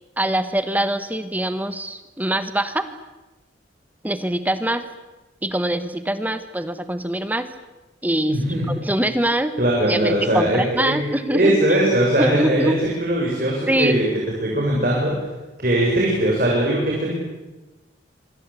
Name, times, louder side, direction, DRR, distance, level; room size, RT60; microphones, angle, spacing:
voice 1, 0.2-2.9 4.0-4.8 5.4-7.5 8.0-8.4 8.7-9.5 9.9-11.5 12.2-12.8 13.7-14.0, right 1 dB, 10° right, 11 dB, 1.3 m, -23 dB
voice 2, 8.3-8.7 9.6-11.0 11.3-12.7 13.0-14.1 14.4-15.2 15.6-17.1, right 1 dB, 45° right, -3 dB, 7.1 m, -20 dB
27.5 x 25.0 x 8.5 m, 1.1 s
head